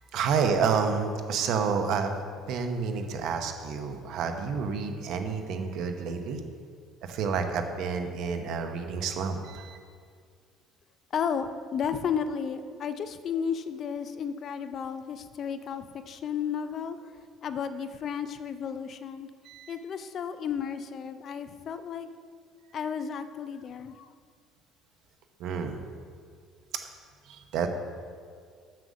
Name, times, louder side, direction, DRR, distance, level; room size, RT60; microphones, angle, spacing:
voice 1, 0.1-6.4 7.0-9.8 19.4-19.8 25.4-25.8 27.3-27.7, right 5 dB, 60° right, 5 dB, 0.9 m, -29 dB
voice 2, 11.1-17.0 17.4-19.3 19.7-22.1 22.7-24.1, left 7 dB, 35° left, 10 dB, 0.4 m, -33 dB
7.6 x 6.9 x 6.3 m, 2.1 s
cardioid pair, 165°, 0 cm